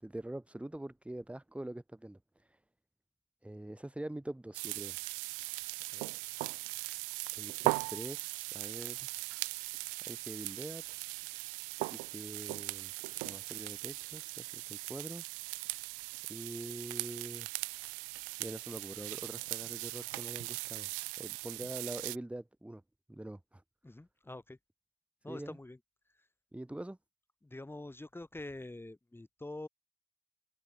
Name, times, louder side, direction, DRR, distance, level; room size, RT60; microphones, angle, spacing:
voice 1, 0.0-2.6 3.4-5.0 7.3-9.1 10.1-11.0 11.9-12.9 13.2-15.2 16.3-17.5 18.4-20.9 21.2-22.8 23.1-23.6 25.3-25.6 26.5-27.0, right 1 dB, 10° right, 1.4 m, -44 dB
sound 1, 4.5-22.2, right 33 dB, 85° right, 0.6 m, -39 dB
voice 2, 23.8-24.6 25.2-25.8 26.1-26.3 27.4-29.7, left 2 dB, 15° left, 6.7 m, -46 dB
hypercardioid pair, 45°, 13 cm